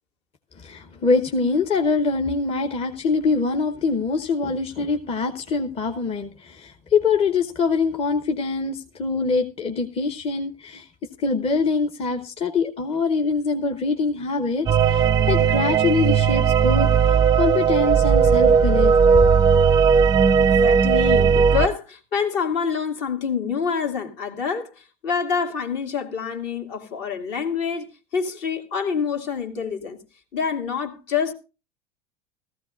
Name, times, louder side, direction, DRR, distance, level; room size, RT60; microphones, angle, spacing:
voice 1, 0.6-10.9 11.2-19.4, left 4 dB, 30° left, 0.9 m, -24 dB
sound 1, 14.7-21.7, right 6 dB, 20° right, 0.5 m, -17 dB
voice 2, 20.4-27.9 28.1-30.0 30.3-31.3, left 6 dB, 60° left, 2.2 m, -26 dB
16.0 x 14.5 x 2.5 m
hypercardioid pair, 90°, 21 cm